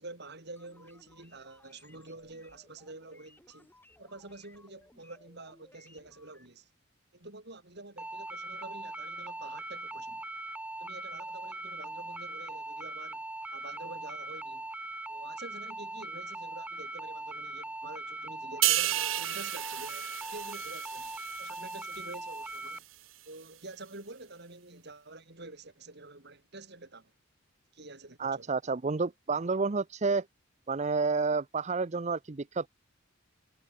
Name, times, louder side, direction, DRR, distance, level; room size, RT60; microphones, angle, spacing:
voice 1, 0.0-3.7 4.0-6.7 7.1-10.2 10.8-13.2 13.5-14.7 15.1-21.1 21.4-22.8 23.3-27.1 27.7-28.5, right 2 dB, 55° right, 4.7 m, -48 dB
sound 1, 0.6-6.5, left 1 dB, 10° left, 6.1 m, -61 dB
sound 2, 8.0-22.8, right 1 dB, 5° right, 1.8 m, -40 dB
sound 3, 18.6-22.1 22.5-22.8, right 15 dB, 75° right, 1.0 m, -32 dB
voice 2, 28.2-30.2 30.7-32.7, right 4 dB, 35° right, 0.6 m, -30 dB
head